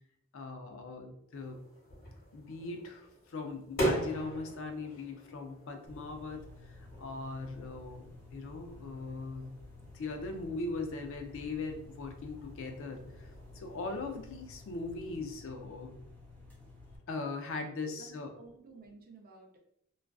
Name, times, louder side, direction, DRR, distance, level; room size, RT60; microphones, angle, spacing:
voice 1, 0.3-1.6 2.3-9.6 9.9-16.0 17.1-18.3, left 3 dB, 65° left, 4 dB, 0.4 m, -40 dB
sound 1, 1.3-15.2, right 1 dB, 45° left, 1.1 m, -42 dB
sound 2, 5.9-17.0, left 2 dB, 10° left, 0.5 m, -52 dB
voice 2, 17.8-19.6, right 3 dB, 45° right, 1 dB, 0.5 m, -53 dB
2.3 x 2.3 x 2.3 m, 0.73 s
head